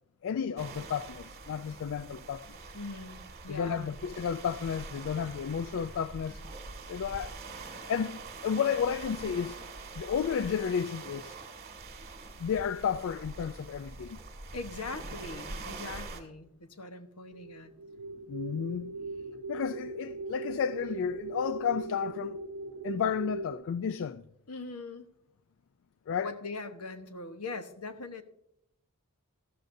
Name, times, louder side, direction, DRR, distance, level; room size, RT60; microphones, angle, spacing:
voice 1, 0.2-2.5 3.5-6.4 6.9-7.3 7.6-9.6 10.0-11.4 12.4-14.2 18.3-19.0 19.5-22.4 22.8-24.2 26.1-26.3, left 7 dB, 60° left, 0.3 m, -32 dB
sound 1, 0.6-16.2, right 3 dB, 45° right, 2.1 m, -44 dB
voice 2, 2.7-4.0 14.5-17.7 24.5-25.1 26.2-28.2, left 3 dB, 75° left, 1.1 m, -41 dB
sound 2, 17.3-23.5, right 3 dB, 80° right, 0.7 m, -40 dB
14.0 x 13.0 x 2.6 m
head